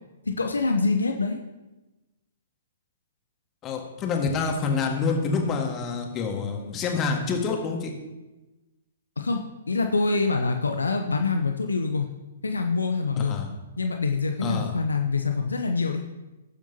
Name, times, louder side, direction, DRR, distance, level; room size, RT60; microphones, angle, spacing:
voice 1, 0.3-1.4 9.2-12.1 12.4-13.4 13.8-16.0, left 4 dB, 80° left, 4 dB, 0.8 m, -25 dB
voice 2, 3.6-7.9 13.2-13.5 14.4-14.7, left 4 dB, 25° left, 2 dB, 1.8 m, -27 dB
18.5 x 7.2 x 2.9 m, 1.1 s
figure-of-eight pair, 120°, 0 cm